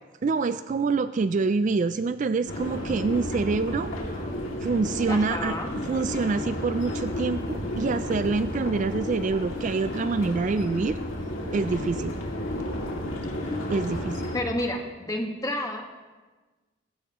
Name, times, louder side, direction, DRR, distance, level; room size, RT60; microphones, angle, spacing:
voice 1, 0.2-4.3 4.6-11.0 11.5-12.2 13.7-14.3, right 4 dB, 40° right, 12 dB, 0.3 m, -26 dB
sound 1, 2.5-14.4, left 1 dB, 85° left, 2.4 m, -32 dB
voice 2, 5.1-5.7 14.3-15.8, left 1 dB, 15° left, 2 dB, 1.5 m, -30 dB
19.0 x 15.5 x 3.0 m, 1.3 s
head